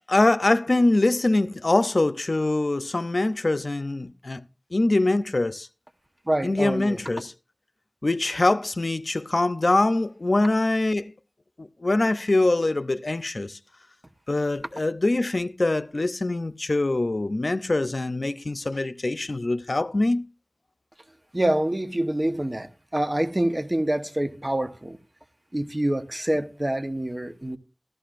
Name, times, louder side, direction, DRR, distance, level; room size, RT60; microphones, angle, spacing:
voice 1, 0.1-4.4 4.7-5.7 6.4-7.3 8.0-11.1 11.6-13.6 14.3-20.3, left 2 dB, 75° left, 0.5 m, -23 dB
voice 2, 6.3-7.0 21.3-25.0 25.5-27.6, right 1 dB, 35° right, 1.0 m, -26 dB
15.0 x 13.5 x 2.5 m
wide cardioid pair, 50°, 0 cm